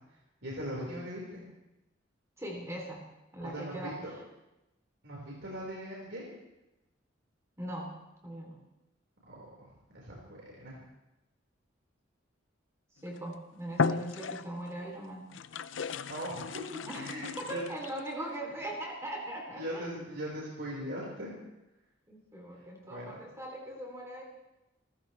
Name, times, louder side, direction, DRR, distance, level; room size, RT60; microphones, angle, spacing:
voice 1, 0.0-1.4 3.4-4.1 5.0-6.4 9.2-10.8 16.1-17.6 19.5-21.4 22.5-23.2, equal, 65° right, -4 dB, 4.9 m, -40 dB
voice 2, 2.4-3.0 3.3-4.0 7.6-7.9 8.2-8.6 13.0-15.2 16.8-17.1 17.4-20.0 22.1-24.2, right 1 dB, 15° right, -1 dB, 3.2 m, -40 dB
sound 1, 13.1-13.3 13.7-14.7 15.3-18.1, left 5 dB, 80° left, 0.6 m, -35 dB
29.0 x 15.0 x 3.3 m, 0.95 s
head